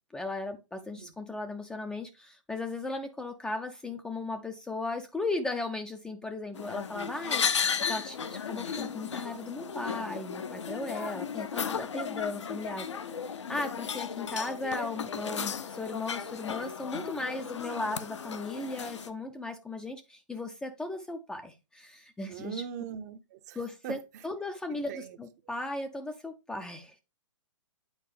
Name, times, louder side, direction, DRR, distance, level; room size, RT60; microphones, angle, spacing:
voice 1, 0.1-12.9 13.5-22.6 23.6-27.0, left 2 dB, 5° left, 0.4 m, -37 dB
sound 1, 6.5-19.1, left 6 dB, 65° left, 0.7 m, -35 dB
voice 2, 22.3-23.6 23.8-24.0 24.7-25.2, right 8 dB, 35° right, 0.6 m, -40 dB
8.8 x 4.5 x 3.2 m
figure-of-eight pair, 120°, 16 cm